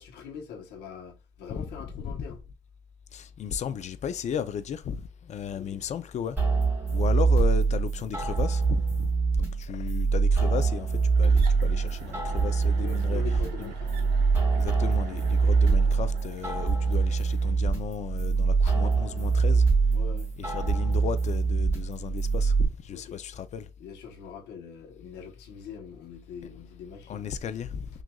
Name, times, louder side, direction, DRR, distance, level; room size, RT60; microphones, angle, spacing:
voice 1, 0.0-2.4 5.5-5.8 12.8-14.1 15.6-15.9 19.9-20.3 22.9-23.2 23.8-27.3, left 6 dB, 85° left, 1.1 m, -43 dB
voice 2, 1.9-2.4 3.1-6.4 6.9-9.1 9.4-13.7 14.6-19.6 20.4-23.7 27.1-27.9, left 8 dB, 45° left, 0.5 m, -35 dB
sound 1, 6.4-22.7, right 4 dB, 10° right, 2.1 m, -24 dB
sound 2, 11.2-17.6, right 6 dB, 70° right, 1.0 m, -45 dB
6.0 x 2.5 x 2.3 m
cardioid pair, 110°, 17 cm